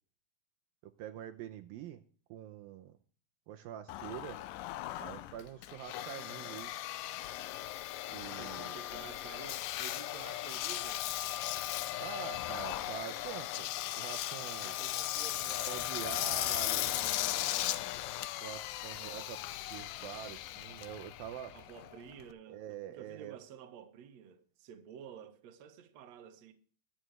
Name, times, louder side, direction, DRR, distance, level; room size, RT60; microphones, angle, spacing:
voice 1, 0.8-2.0 2.3-3.0 3.5-4.4 5.0-6.7 8.1-8.8 12.0-14.8 15.6-17.0 18.4-19.4 19.7-21.6 22.5-23.4, right 11 dB, 80° right, 2.4 m, -45 dB
Engine, 3.9-22.3, left 14 dB, 75° left, 2.1 m, -37 dB
voice 2, 8.4-11.1 14.6-16.4 16.7-17.3 19.0-19.3 21.5-26.5, right 8 dB, 55° right, 2.1 m, -51 dB
22.0 x 7.8 x 3.3 m
omnidirectional pair, 4.5 m